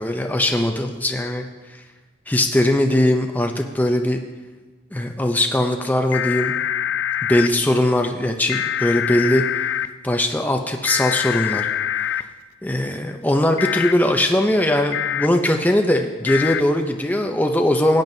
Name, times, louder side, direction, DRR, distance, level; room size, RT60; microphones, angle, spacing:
voice 1, 0.0-1.5 2.3-4.2 4.9-6.6 7.3-9.6 10.0-11.7 12.0-12.3 12.6-18.0, left 1 dB, 10° left, 4 dB, 0.5 m, -20 dB
sound 1, 6.1-7.5 8.5-9.9 10.9-12.2 13.6-13.9 14.9-15.3 16.3-16.6, left 10 dB, 70° left, 0.4 m, -24 dB
17.0 x 9.1 x 2.7 m, 1.3 s
head